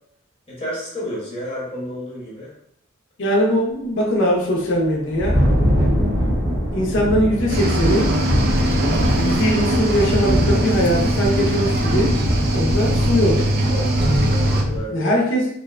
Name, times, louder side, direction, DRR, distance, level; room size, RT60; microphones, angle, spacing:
voice 1, 0.5-2.5 13.7-15.1, equal, 25° left, -7 dB, 0.7 m, -31 dB
voice 2, 3.2-5.4 6.7-8.1 9.2-12.1 12.5-13.5 14.9-15.5, equal, 60° left, -2 dB, 0.5 m, -20 dB
Thunder, 4.6-14.8, equal, 15° right, 0.8 m, -22 dB
Cricket / Waves surf, 7.5-14.6, right 1 dB, 45° right, 0.4 m, -21 dB
2.5 x 2.1 x 2.3 m, 0.73 s
head